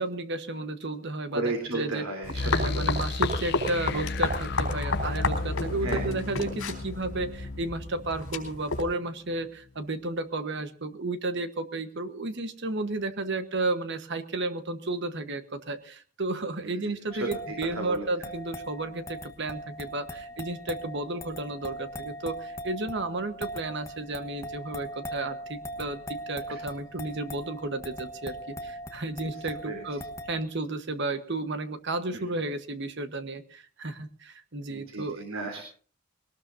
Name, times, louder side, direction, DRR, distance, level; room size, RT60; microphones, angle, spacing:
voice 1, 0.0-2.1 2.4-35.2, right 2 dB, 55° right, 10 dB, 1.3 m, -33 dB
voice 2, 1.3-3.0 5.8-6.1 16.6-16.9 17.5-18.1 26.5-26.6 29.7-29.8 34.7-35.6, right 2 dB, 80° right, 3 dB, 3.5 m, -34 dB
sound 1, 2.2-8.8, left 2 dB, 70° left, 4.1 m, -31 dB
sound 2, 2.3-9.1, left 3 dB, 50° left, 0.7 m, -34 dB
sound 3, 17.1-30.4, equal, 15° left, 1.2 m, -40 dB
21.5 x 18.5 x 2.7 m, 0.43 s
head